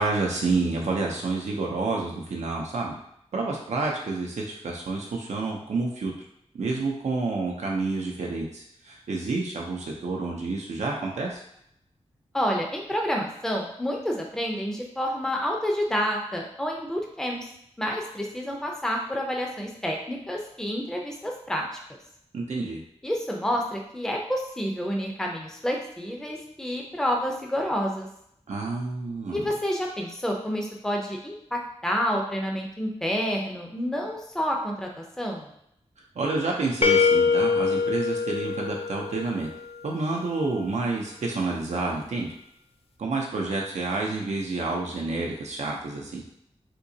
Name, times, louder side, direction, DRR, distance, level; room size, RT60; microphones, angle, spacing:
voice 1, 0.0-3.0 3.3-6.1 6.5-11.4 22.3-22.8 28.5-29.5 36.2-39.5 39.8-42.3 43.0-46.2, right 3 dB, 80° right, -1 dB, 0.5 m, -29 dB
voice 2, 12.3-17.4 17.8-21.7 23.0-28.1 29.3-35.5, equal, 5° left, 0 dB, 0.5 m, -29 dB
sound 1, 36.8-39.7, left 5 dB, 55° left, 0.4 m, -24 dB
3.6 x 2.8 x 2.7 m, 0.74 s
wide cardioid pair, 110°, 12 cm